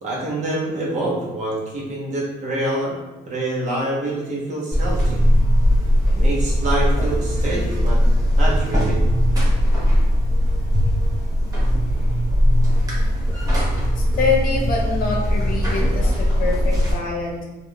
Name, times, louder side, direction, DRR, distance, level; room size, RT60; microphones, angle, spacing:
voice 1, 0.0-2.9 3.3-5.2 6.2-8.0 8.4-9.0 10.7-10.8, right 1 dB, 45° right, -4 dB, 1.0 m, -26 dB
Buzz, 4.7-16.9, equal, 20° right, 1.0 m, -19 dB
voice 2, 14.0-17.4, left 4 dB, 60° left, -1 dB, 0.7 m, -25 dB
3.4 x 2.5 x 2.3 m, 1.1 s
cardioid pair, 110°, 17 cm